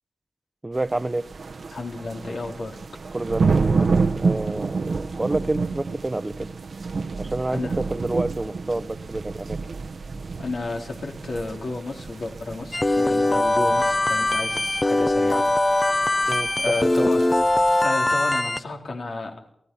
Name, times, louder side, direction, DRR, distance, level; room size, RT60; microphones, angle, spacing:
voice 1, 0.6-1.3 3.1-6.5 7.2-9.6 16.3-17.1, right 2 dB, 25° right, 13 dB, 0.9 m, -29 dB
sound 1, 0.8-17.9, right 4 dB, 70° right, 1.0 m, -29 dB
voice 2, 1.7-2.8 7.5-7.7 10.4-15.5 16.6-17.2 17.8-19.5, left 3 dB, 85° left, 1 dB, 4.0 m, -31 dB
sound 2, 12.7-18.6, left 2 dB, 25° left, 0.8 m, -21 dB
28.0 x 17.0 x 5.6 m, 0.68 s
wide cardioid pair, 90°, 0 cm